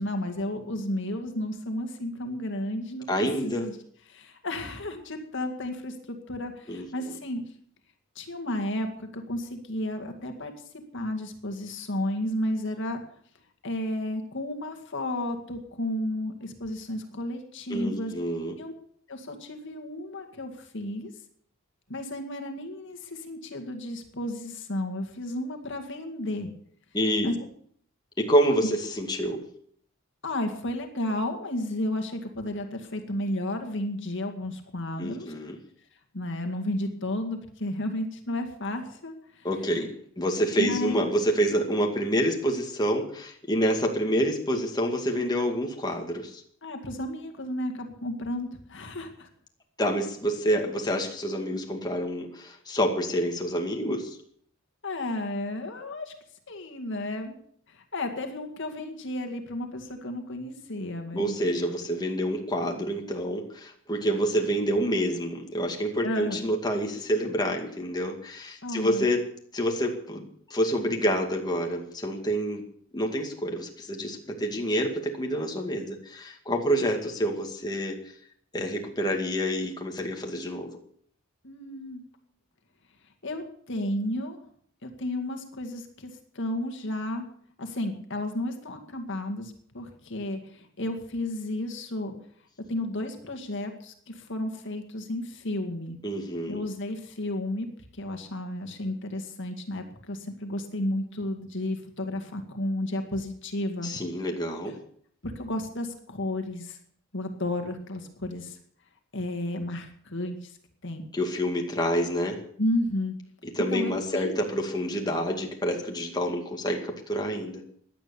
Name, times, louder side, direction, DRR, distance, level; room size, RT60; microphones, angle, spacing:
voice 1, 0.0-3.1 3.4-3.8 4.1-7.4 8.2-10.5 10.9-13.0 13.6-18.1 18.6-18.7 19.1-21.1 21.9-26.5 27.2-27.4 30.2-35.3 36.1-39.5 40.6-41.0 46.6-49.3 54.8-56.1 56.5-57.4 57.7-61.4 66.0-66.4 68.6-69.1 81.4-82.0 83.2-84.4 84.8-87.3 87.6-92.2 92.7-96.0 96.5-103.9 105.2-106.8 107.1-108.6 109.1-110.6 110.8-111.0 112.6-113.1 113.7-114.4, left 1 dB, 60° left, 5 dB, 2.1 m, -32 dB
voice 2, 3.1-3.7 6.7-6.9 17.7-18.6 26.9-27.3 28.2-29.4 35.0-35.6 39.4-46.4 49.8-54.2 61.1-69.3 69.5-72.6 72.9-78.0 78.5-80.8 96.0-96.6 103.8-104.8 111.1-112.4 113.5-117.6, equal, 20° left, 1 dB, 2.1 m, -27 dB
16.5 x 11.0 x 7.1 m, 0.62 s
head